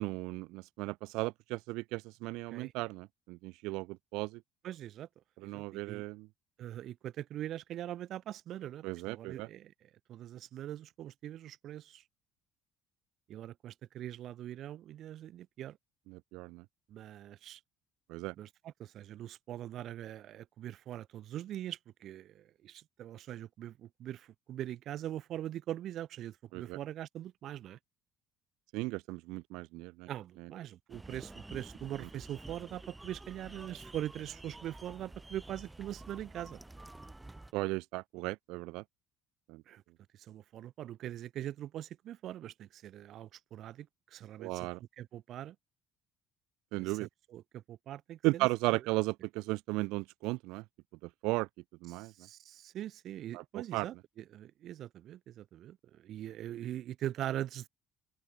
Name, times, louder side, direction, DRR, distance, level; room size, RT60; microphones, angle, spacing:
voice 1, 0.0-4.4 5.4-6.3 8.8-9.5 16.1-16.6 18.1-18.3 26.5-26.8 28.7-30.1 30.4-30.5 32.0-32.1 37.5-38.8 39.5-39.6 44.4-44.8 46.7-47.1 48.2-50.6 51.0-51.5 51.8-52.1 53.3-53.9, right 22 dB, 85° right, 1.3 m, -35 dB
voice 2, 4.6-5.1 5.4-6.0 6.6-12.0 13.3-15.8 16.9-17.6 18.4-27.8 30.1-36.6 39.7-39.8 40.2-44.7 45.0-45.6 46.8-48.5 51.9-57.7, right 12 dB, 45° right, 1.7 m, -42 dB
sound 1, 30.9-37.5, right 2 dB, 10° right, 5.5 m, -50 dB
open air
cardioid pair, 165°, 0 cm